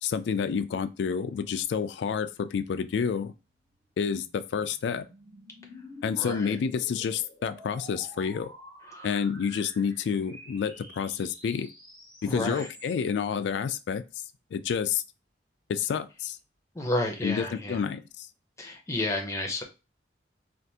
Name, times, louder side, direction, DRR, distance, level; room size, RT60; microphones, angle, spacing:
voice 1, 0.0-3.3 4.0-5.1 6.0-8.5 9.0-11.7 12.2-14.0 14.5-15.0 15.7-16.4 17.2-18.3, left 6 dB, 70° left, 0.3 m, -29 dB
sound 1, 3.6-13.4, equal, 35° right, 1.3 m, -49 dB
voice 2, 6.2-6.6 8.9-9.1 12.3-12.7 16.7-17.8 18.6-19.6, left 1 dB, 15° left, 0.6 m, -31 dB
3.3 x 2.4 x 2.7 m
head